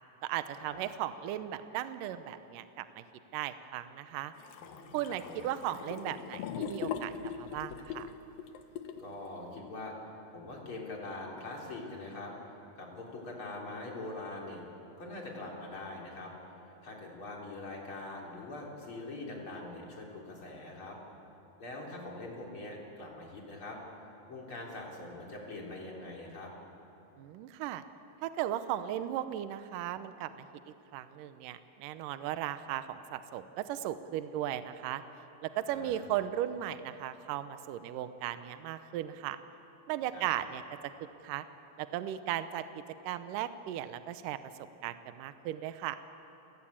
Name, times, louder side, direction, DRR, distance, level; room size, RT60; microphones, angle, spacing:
voice 1, 0.2-3.0 3.3-4.3 4.9-8.1 27.2-27.8 28.2-35.0 35.4-39.4 39.9-40.9 41.2-41.4 41.8-44.4 44.8-46.0, right 12 dB, 75° right, 11 dB, 2.3 m, -36 dB
sound 1, 4.4-9.1, left 7 dB, 80° left, 2.9 m, -40 dB
voice 2, 4.6-5.4 9.0-9.9 10.3-12.3 12.8-14.6 15.0-16.3 16.8-21.0 21.6-23.8 24.3-26.5 35.7-36.1 40.1-40.3, left 2 dB, 35° left, -2 dB, 4.4 m, -43 dB
29.0 x 18.5 x 8.7 m, 2.9 s
omnidirectional pair, 4.0 m